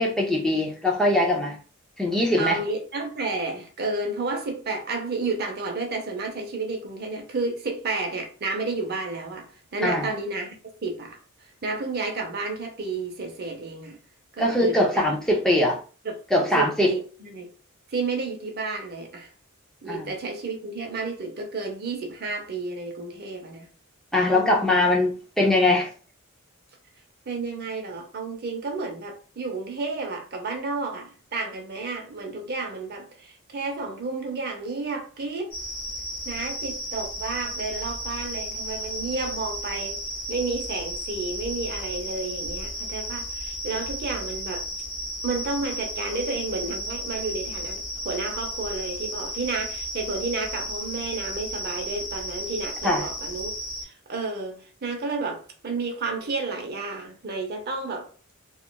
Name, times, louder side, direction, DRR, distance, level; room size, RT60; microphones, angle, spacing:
voice 1, 0.0-1.6 2.0-2.6 9.8-10.1 14.4-15.8 16.3-16.9 19.9-20.1 24.1-25.9 52.8-53.0, left 1 dB, 5° left, 0.5 m, -22 dB
voice 2, 2.4-10.6 10.8-11.2 11.6-14.0 14.4-15.0 16.0-17.5 17.9-19.3 19.8-23.7 24.3-24.8 27.3-35.5 36.3-40.0 40.3-44.7 45.2-53.5 53.8-58.1, right 3 dB, 50° right, 0.6 m, -31 dB
sound 1, 35.5-53.8, equal, 75° left, 1.4 m, -34 dB
2.9 x 2.4 x 2.2 m
head